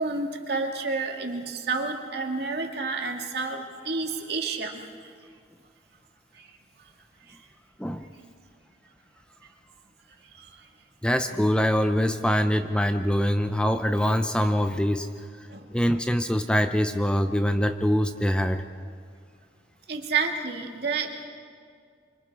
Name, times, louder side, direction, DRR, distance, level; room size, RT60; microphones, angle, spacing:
voice 1, 0.0-4.8 6.4-6.5 7.3-7.4 15.5-15.6 19.9-21.3, right 4 dB, 60° right, 2 dB, 2.2 m, -30 dB
voice 2, 11.0-15.1 15.7-18.6, equal, 5° left, 8 dB, 0.6 m, -24 dB
26.0 x 24.5 x 4.8 m, 2.2 s
head